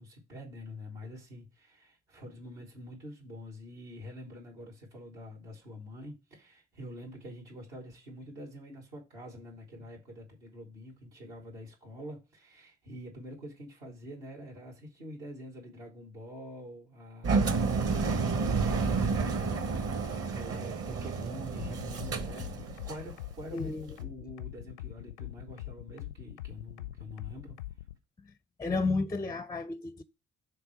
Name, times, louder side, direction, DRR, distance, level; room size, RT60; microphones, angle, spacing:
voice 1, 0.0-27.6, left 1 dB, 75° right, 2.1 m, -46 dB
Engine, 17.2-23.1, right 4 dB, 45° right, 1.2 m, -30 dB
sound 1, 21.6-27.9, left 15 dB, 80° left, 0.6 m, -42 dB
voice 2, 23.5-24.0 28.6-30.0, left 3 dB, 10° left, 0.4 m, -32 dB
6.8 x 3.4 x 5.6 m
figure-of-eight pair, 45°, 34 cm